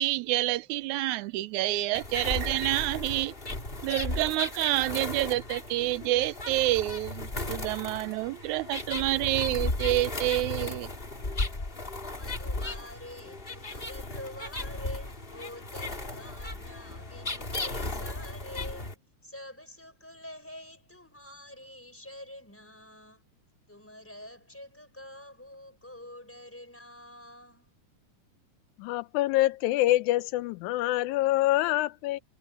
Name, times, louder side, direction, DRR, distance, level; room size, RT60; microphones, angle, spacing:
voice 1, 0.0-3.3 3.8-10.9, right 16 dB, 80° right, 2.0 m, -28 dB
sound 1, 1.9-18.9, left 2 dB, 20° left, 2.1 m, -35 dB
voice 2, 12.0-23.2 23.7-27.7, left 1 dB, 5° left, 4.8 m, -47 dB
voice 3, 28.8-32.2, left 16 dB, 80° left, 2.0 m, -26 dB
omnidirectional pair, 3.6 m